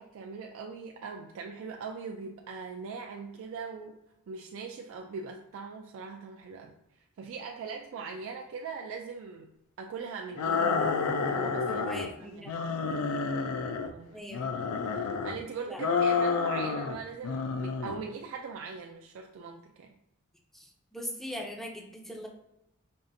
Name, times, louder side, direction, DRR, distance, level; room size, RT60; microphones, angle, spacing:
voice 1, 0.0-4.0 4.3-6.7 7.2-9.5 9.8-11.0 11.3-11.9 12.2-12.5 13.4-13.5 13.8-14.2 14.9-20.0, right 5 dB, 65° right, 2 dB, 0.3 m, -41 dB
sound 1, 10.4-12.1 12.5-13.9 14.3-15.4 15.8-17.0 17.2-18.0, left 5 dB, 85° left, 0.3 m, -29 dB
voice 2, 11.7-12.9 14.1-14.5 15.7-15.8 20.5-22.3, equal, ahead, 1 dB, 0.4 m, -41 dB
5.2 x 2.4 x 2.6 m, 0.87 s
head